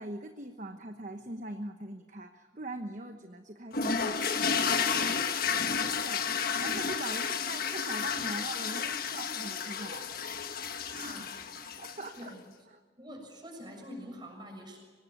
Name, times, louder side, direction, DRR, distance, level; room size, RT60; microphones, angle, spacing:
voice 1, 0.0-10.1 10.4-11.2 11.8-12.3, right 1 dB, 40° right, 6 dB, 1.1 m, -42 dB
sound 1, 3.7-12.2, left 6 dB, 50° left, 1.5 m, -31 dB
voice 2, 10.7-11.8 12.1-12.5 13.0-14.8, equal, 25° right, 2 dB, 6.8 m, -47 dB
24.0 x 19.5 x 9.6 m, 1.5 s
head